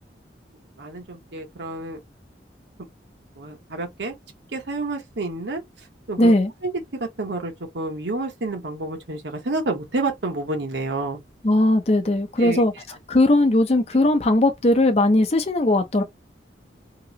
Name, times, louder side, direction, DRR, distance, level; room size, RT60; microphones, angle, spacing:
voice 1, 0.8-2.0 3.4-4.1 4.5-5.6 6.1-6.3 6.6-6.7 7.0-11.2 12.4-12.6, right 2 dB, 80° right, 1.0 m, -29 dB
voice 2, 6.2-6.5 11.4-12.7 13.1-16.0, left 1 dB, 35° left, 0.6 m, -18 dB
2.9 x 2.9 x 2.8 m
head